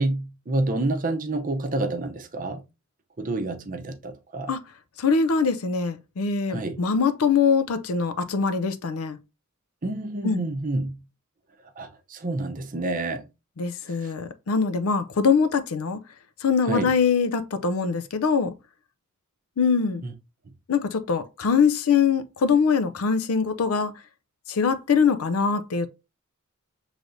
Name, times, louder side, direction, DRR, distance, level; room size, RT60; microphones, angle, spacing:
voice 1, 0.0-2.6 3.2-4.5 6.5-6.8 9.8-11.0 11.8-13.3 14.0-14.1 16.6-16.9 20.0-20.1, right 2 dB, 40° right, 0.6 m, -28 dB
voice 2, 5.0-9.2 10.2-10.4 13.6-16.0 16.4-18.5 19.6-20.0 20.7-23.9 24.5-25.9, left 5 dB, 85° left, 0.5 m, -23 dB
6.3 x 3.2 x 2.6 m
head